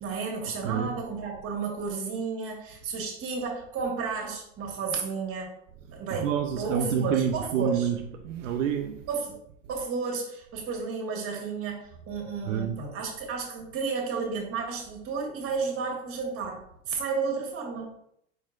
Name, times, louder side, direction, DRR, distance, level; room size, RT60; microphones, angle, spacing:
voice 1, 0.0-5.5 5.9-7.9 9.1-9.4 9.7-16.6 16.9-17.9, right 5 dB, 35° right, 1.6 m, -32 dB
voice 2, 0.6-0.9 6.1-8.0 8.2-9.0 12.5-12.8, right 8 dB, 80° right, 0.5 m, -28 dB
4.8 x 4.4 x 2.5 m
hypercardioid pair, 95°, 37 cm